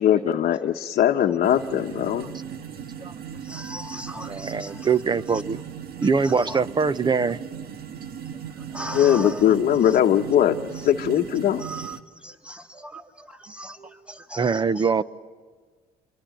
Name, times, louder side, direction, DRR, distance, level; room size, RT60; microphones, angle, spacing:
voice 1, 0.0-2.3 8.9-11.6, left 10 dB, 55° left, 1.0 m, -20 dB
sound 1, 1.4-12.0, right 8 dB, 65° right, 1.8 m, -37 dB
voice 2, 3.4-5.4 6.0-6.6 8.5-10.0 10.7-10.9 11.6-14.9, right 1 dB, 5° right, 2.1 m, -39 dB
voice 3, 4.3-5.6 6.0-7.4 14.4-15.0, right 5 dB, 25° right, 0.9 m, -23 dB
27.0 x 23.0 x 9.2 m
cardioid pair, 110°, 17 cm